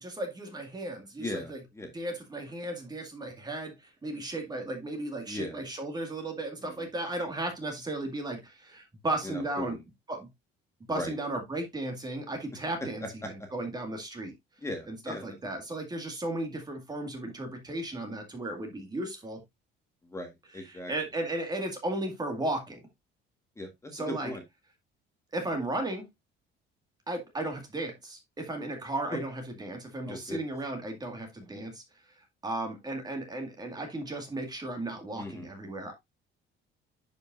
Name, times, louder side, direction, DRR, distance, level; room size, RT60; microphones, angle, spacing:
voice 1, 0.0-1.6 1.9-3.7 4.0-9.8 10.1-10.3 10.9-14.3 14.9-19.4 20.9-22.8 23.9-24.3 25.3-26.1 27.1-31.8 32.4-35.9, right 2 dB, 20° right, 2.1 m, -35 dB
voice 2, 1.2-1.9 5.3-5.6 6.6-6.9 9.2-9.8 10.9-11.1 13.0-13.3 14.6-15.4 20.0-20.9 23.6-24.4 30.0-30.4 35.1-35.5, left 1 dB, 15° left, 1.7 m, -38 dB
10.5 x 5.3 x 2.6 m
cardioid pair, 140°, 21 cm